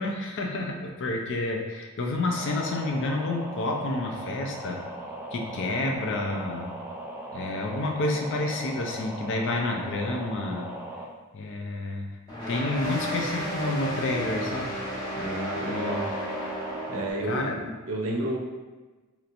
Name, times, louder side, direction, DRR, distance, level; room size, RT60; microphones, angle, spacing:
voice 1, 0.0-4.8 5.3-6.7 7.3-10.7 11.3-12.1 12.5-14.8 15.6-16.0 17.2-17.7, left 2 dB, 55° left, 2 dB, 0.4 m, -29 dB
sound 1, 2.4-11.1 15.7-17.1, right 1 dB, 10° right, 0.3 m, -38 dB
sound 2, 12.3-17.4, equal, 20° left, 1.0 m, -33 dB
voice 2, 15.2-16.1 16.9-18.4, right 1 dB, 70° right, 0 dB, 0.6 m, -31 dB
3.1 x 3.0 x 2.5 m, 1.2 s
head